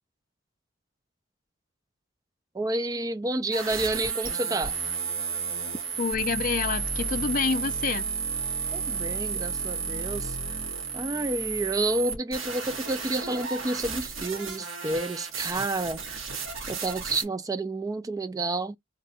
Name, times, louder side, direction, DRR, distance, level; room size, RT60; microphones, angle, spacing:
voice 1, 2.5-4.7 8.7-10.6 10.9-16.0 16.7-18.8, right 2 dB, 20° right, 0.3 m, -30 dB
sound 1, 3.5-17.2, right 5 dB, 90° right, 1.6 m, -32 dB
voice 2, 6.0-8.1, left 5 dB, 45° left, 0.4 m, -28 dB
3.7 x 2.2 x 4.1 m
head